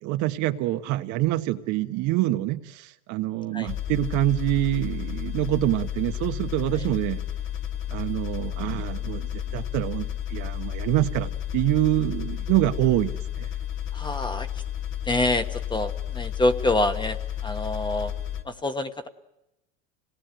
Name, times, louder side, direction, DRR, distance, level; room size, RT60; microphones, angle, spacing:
voice 1, 0.0-7.2 7.9-13.1 13.4-13.5, right 16 dB, 55° right, 8 dB, 1.4 m, -26 dB
sound 1, 3.7-18.4, left 10 dB, 35° left, 1.6 m, -32 dB
voice 2, 13.9-14.6 15.0-18.1 18.4-19.1, left 2 dB, 15° left, 8 dB, 1.3 m, -26 dB
26.5 x 19.0 x 9.1 m, 0.91 s
supercardioid pair, 115°, 35 cm